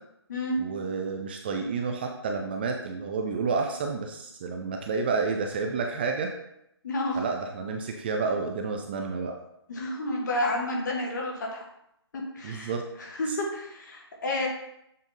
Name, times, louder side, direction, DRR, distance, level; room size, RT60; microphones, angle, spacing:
voice 1, 0.6-6.3 7.1-9.3 12.4-12.8, right 4 dB, 25° right, 3 dB, 0.4 m, -30 dB
voice 2, 6.8-7.2 9.7-11.6 12.1-12.7 13.0-14.5, left 1 dB, 45° left, 0 dB, 1.6 m, -30 dB
7.3 x 3.7 x 3.9 m, 0.79 s
figure-of-eight pair, 140°, 14 cm